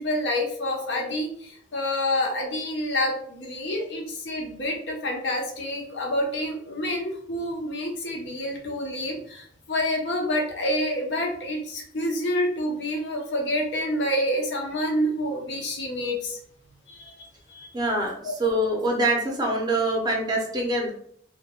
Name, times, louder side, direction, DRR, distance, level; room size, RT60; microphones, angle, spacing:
voice 1, 0.0-16.4 16.9-17.7 18.2-18.3, left 1 dB, 65° left, 0 dB, 0.6 m, -28 dB
voice 2, 17.7-20.9, right 1 dB, 20° right, -1 dB, 0.5 m, -25 dB
2.1 x 2.1 x 2.8 m, 0.64 s
head